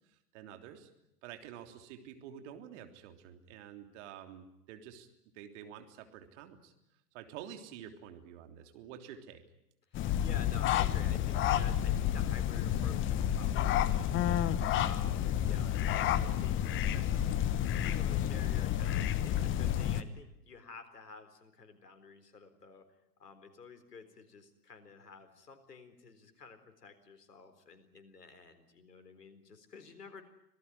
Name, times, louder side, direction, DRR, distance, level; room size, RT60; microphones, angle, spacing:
voice 1, 0.1-0.9 1.2-5.1 5.3-6.7 7.1-9.4, right 9 dB, 45° right, 6 dB, 3.4 m, -49 dB
voice 2, 9.9-22.8 23.2-30.2, left 5 dB, 80° left, 10 dB, 4.1 m, -52 dB
sound 1, 9.9-20.0, left 11 dB, 25° left, 1.2 m, -30 dB
26.0 x 18.0 x 9.9 m, 0.83 s
figure-of-eight pair, 105°, 47 cm